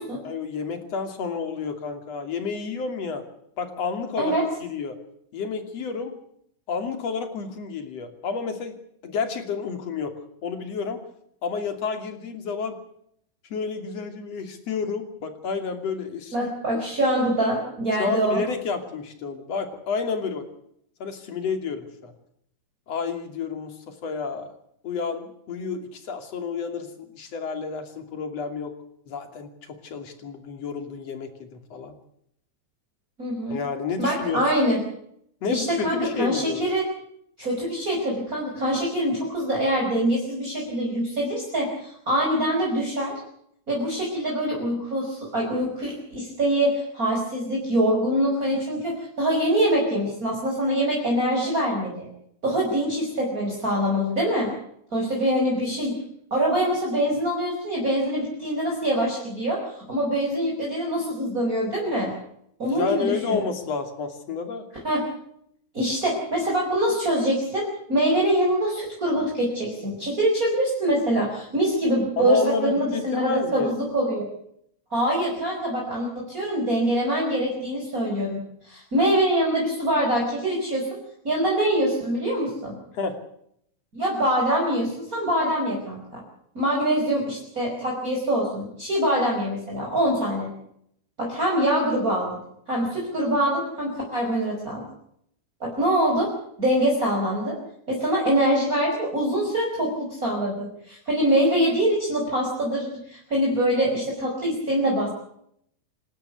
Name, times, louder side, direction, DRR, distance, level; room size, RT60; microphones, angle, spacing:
voice 1, 0.2-3.2 3.6-5.0 5.3-6.2 6.7-8.8 9.0-10.2 10.4-11.0 11.4-12.8 13.5-16.5 18.0-20.4 21.0-22.1 22.9-24.5 24.8-28.7 29.1-31.9 33.5-34.5 35.4-36.6 62.7-64.6 72.2-73.7 82.9-83.2, left 5 dB, 45° left, 7 dB, 3.6 m, -30 dB
voice 2, 16.3-18.4 33.2-33.6 34.0-34.8 35.5-36.9 37.4-43.1 43.7-52.1 52.4-54.5 54.9-56.0 56.3-62.1 62.6-63.4 64.8-65.1 65.7-74.3 74.9-78.4 78.6-81.0 81.2-82.8 83.9-86.2 86.5-90.5 91.2-92.4 92.7-94.8 95.6-96.3 96.6-97.6 97.9-105.1, right 1 dB, 20° right, -2 dB, 5.7 m, -24 dB
28.0 x 13.0 x 8.4 m, 0.71 s
omnidirectional pair, 4.2 m